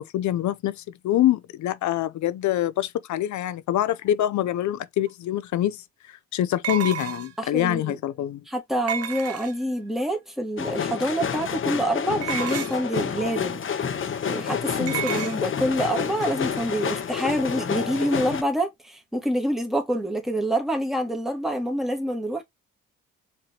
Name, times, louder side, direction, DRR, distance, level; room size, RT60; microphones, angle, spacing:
voice 1, 0.0-5.8 6.3-8.4 14.8-15.1, left 12 dB, 70° left, 0.7 m, -25 dB
sound 1, 5.1-5.2 6.6-7.5 8.9-9.8 12.2-12.9 14.9-15.4, right 9 dB, 55° right, 0.7 m, -31 dB
voice 2, 7.4-8.0 8.5-13.6 14.3-22.4, right 1 dB, ahead, 1.7 m, -27 dB
sound 2, 10.6-18.4, left 7 dB, 40° left, 0.9 m, -29 dB
5.0 x 3.4 x 2.9 m
cardioid pair, 90°, 30 cm